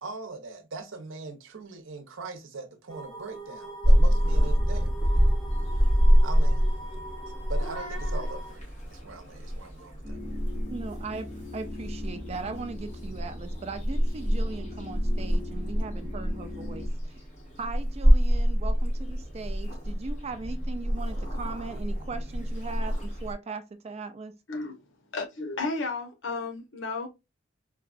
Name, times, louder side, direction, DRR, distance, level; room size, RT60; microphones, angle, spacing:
voice 1, 0.0-4.9 6.2-6.7 7.5-10.2, right 3 dB, 80° right, 0.7 m, -41 dB
sound 1, 2.9-8.6, right 1 dB, 20° left, 0.9 m, -43 dB
Purr / Meow, 3.8-23.3, equal, 40° left, 2.3 m, -26 dB
sound 2, 10.0-16.9, left 1 dB, 10° right, 0.8 m, -41 dB
voice 2, 10.7-11.3 11.5-17.2 17.6-24.4, right 4 dB, 30° right, 0.4 m, -39 dB
voice 3, 24.5-24.8 25.1-27.1, left 3 dB, 70° left, 1.0 m, -33 dB
4.5 x 2.3 x 2.3 m
head